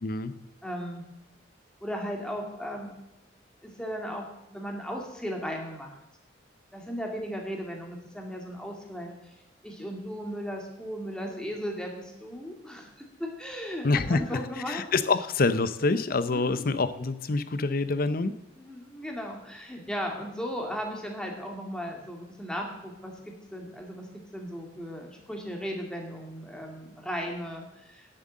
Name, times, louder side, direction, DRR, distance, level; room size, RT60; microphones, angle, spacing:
voice 1, 0.0-0.3 13.8-18.3, left 3 dB, 50° left, 13 dB, 0.7 m, -26 dB
voice 2, 0.6-1.1 1.8-2.9 3.6-5.9 6.7-9.4 9.6-14.8 16.3-16.6 18.6-28.1, equal, 5° left, 1 dB, 2.3 m, -36 dB
10.5 x 7.6 x 7.4 m, 0.90 s
head